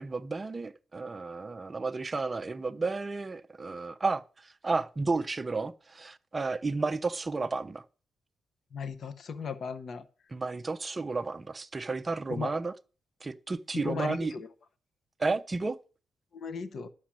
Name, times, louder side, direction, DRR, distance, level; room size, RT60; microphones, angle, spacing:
voice 1, 0.0-7.8 10.3-12.7 13.2-14.3 15.2-15.8, right 3 dB, 20° right, 0.5 m, -32 dB
voice 2, 8.7-10.0 12.3-12.5 13.7-14.5 16.3-16.9, left 5 dB, 45° left, 0.9 m, -36 dB
11.5 x 6.2 x 7.4 m
wide cardioid pair, 165°, 0 cm